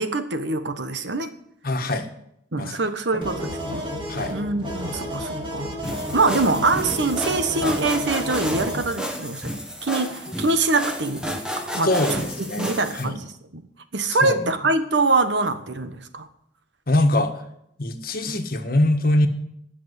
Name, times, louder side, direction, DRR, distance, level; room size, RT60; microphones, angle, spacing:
voice 1, 0.0-1.3 2.5-3.9 4.3-5.8 6.1-12.2 12.6-13.7 13.9-16.3, right 3 dB, 70° right, 9 dB, 1.3 m, -24 dB
voice 2, 1.6-2.1 2.6-2.8 3.1-3.5 4.1-4.4 11.8-12.7 13.0-13.2 14.2-14.5 16.9-17.3 17.8-19.3, left 1 dB, 55° left, 6 dB, 1.5 m, -23 dB
sound 1, 3.2-8.9, equal, 25° right, 2.8 m, -31 dB
sound 2, 5.8-13.0, equal, 5° right, 1.6 m, -31 dB
19.0 x 6.4 x 8.2 m, 0.76 s
head